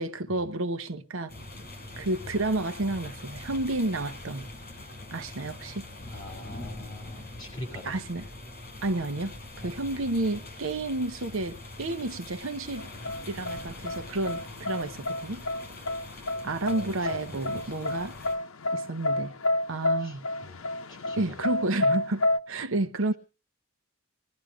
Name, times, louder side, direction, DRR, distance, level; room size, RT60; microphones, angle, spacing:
voice 1, 0.0-1.3 2.0-4.4 5.1-5.8 7.8-8.2 8.8-12.9 13.3-15.4 16.4-18.2 18.7-19.4 19.7-20.2 21.2-23.1, right 2 dB, 75° right, 0.9 m, -31 dB
sound 1, 1.3-18.3, left 2 dB, 45° left, 7.0 m, -43 dB
voice 2, 6.1-8.0 9.6-9.7 16.7-17.0 17.3-17.7 20.0-21.4, left 1 dB, 20° left, 7.7 m, -43 dB
sound 2, 12.8-22.4, left 2 dB, 85° left, 0.8 m, -31 dB
20.0 x 11.5 x 5.0 m
head